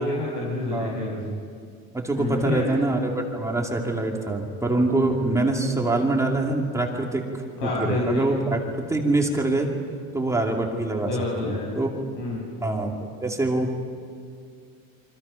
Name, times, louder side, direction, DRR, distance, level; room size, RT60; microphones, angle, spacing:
voice 1, 0.0-1.1 2.1-2.9 7.6-8.2 11.1-11.9 12.2-12.6, left 2 dB, 75° left, -4 dB, 6.3 m, -28 dB
voice 2, 0.7-1.3 1.9-9.7 10.1-11.1 11.4-11.9 12.6-13.8, right 2 dB, 10° right, 0 dB, 2.5 m, -25 dB
28.5 x 25.0 x 5.7 m, 2.3 s
cardioid pair, 150°, 33 cm